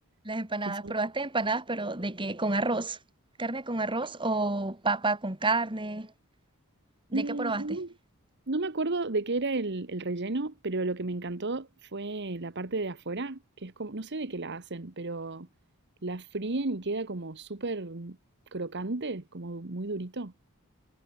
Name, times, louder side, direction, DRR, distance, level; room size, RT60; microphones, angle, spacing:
voice 1, 0.2-3.0 3.4-6.1 7.1-7.6, right 3 dB, 25° right, 3.2 m, -30 dB
voice 2, 7.1-7.9 8.5-15.5 16.0-18.2 18.5-20.3, right 2 dB, 55° right, 1.4 m, -33 dB
head